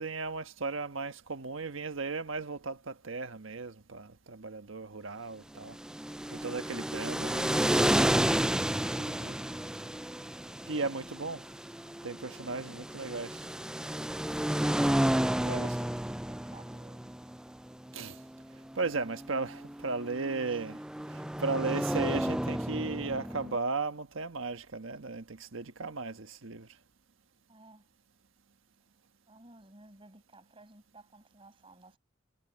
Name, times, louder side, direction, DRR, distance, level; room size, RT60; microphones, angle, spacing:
voice 1, 0.0-5.8 6.3-8.5 9.0-9.4 10.7-11.4 12.0-13.4 15.4-15.9 17.9-18.2 18.8-20.8 21.1-26.7, right 3 dB, 75° right, 1.3 m, -36 dB
sound 1, 5.7-23.6, right 1 dB, 5° right, 0.4 m, -32 dB
voice 2, 16.3-17.1 20.4-20.8 27.5-27.9 29.3-32.0, right 2 dB, 25° right, 5.8 m, -56 dB
head